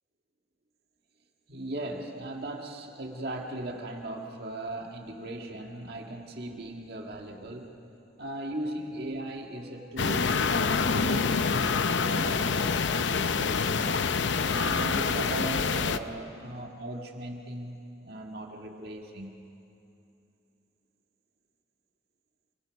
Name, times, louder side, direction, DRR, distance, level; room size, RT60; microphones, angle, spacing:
voice 1, 1.5-7.8 8.2-13.9 14.5-19.4, right 1 dB, 55° right, 1 dB, 2.0 m, -38 dB
sound 1, 10.0-16.0, left 5 dB, 75° left, 0.7 m, -26 dB
28.0 x 23.0 x 5.3 m, 2.7 s
head